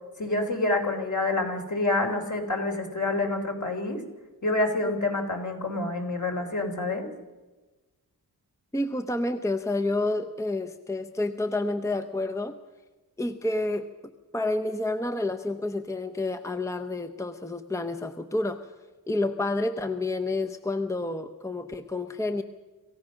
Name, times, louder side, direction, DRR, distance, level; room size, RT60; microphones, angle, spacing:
voice 1, 0.2-4.0 4.4-7.1, left 2 dB, 50° left, 3 dB, 3.4 m, -27 dB
voice 2, 8.7-12.6 13.2-13.9 14.3-18.7 19.1-22.4, left 2 dB, 10° left, 7 dB, 0.7 m, -29 dB
26.5 x 15.5 x 6.3 m, 1.2 s
wide cardioid pair, 110°, 39 cm